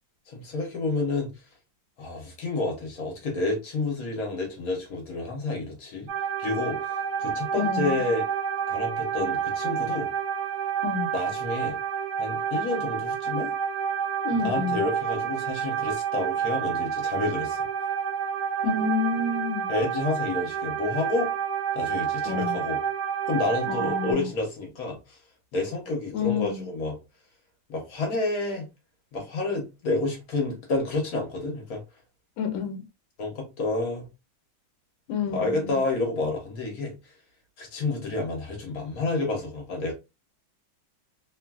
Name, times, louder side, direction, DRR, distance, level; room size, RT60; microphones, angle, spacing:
voice 1, 0.3-1.4 2.0-6.1 6.4-8.2 8.7-10.1 11.1-11.8 12.2-13.5 14.3-17.7 19.7-21.3 21.7-22.8 23.3-25.2 25.5-27.0 27.7-28.7 29.1-31.8 33.2-34.1 35.3-37.0 37.6-39.9, left 3 dB, 55° left, 1.2 m, -29 dB
sound 1, 6.1-24.1, right 8 dB, 90° right, 1.5 m, -29 dB
voice 2, 7.5-8.0 10.8-11.1 14.2-14.8 18.6-19.7 22.3-22.6 23.7-24.3 26.1-26.7 32.4-32.8 35.1-35.8, left 4 dB, 80° left, 1.4 m, -29 dB
3.1 x 2.4 x 2.3 m
omnidirectional pair, 2.2 m